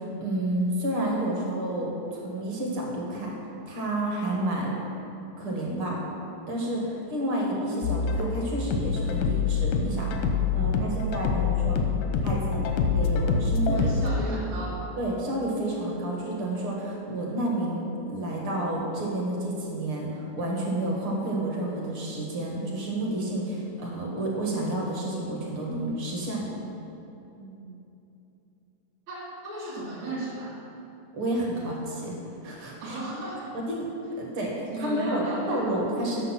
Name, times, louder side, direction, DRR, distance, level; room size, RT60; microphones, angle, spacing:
voice 1, 0.0-3.3 3.7-4.8 5.4-6.0 6.5-10.1 10.5-11.8 12.2-12.7 12.9-14.2 15.0-26.5 31.1-32.2 32.4-33.0 33.7-33.9 34.2-36.3, right 1 dB, 50° right, -2 dB, 1.9 m, -30 dB
sound 1, 7.8-14.1, left 5 dB, 90° left, 2.3 m, -26 dB
voice 2, 13.7-14.9 27.4-27.7 29.1-30.5 32.8-33.5 34.7-35.6, right 1 dB, 65° right, -9 dB, 2.6 m, -35 dB
8.0 x 6.6 x 5.7 m, 2.9 s
omnidirectional pair, 3.5 m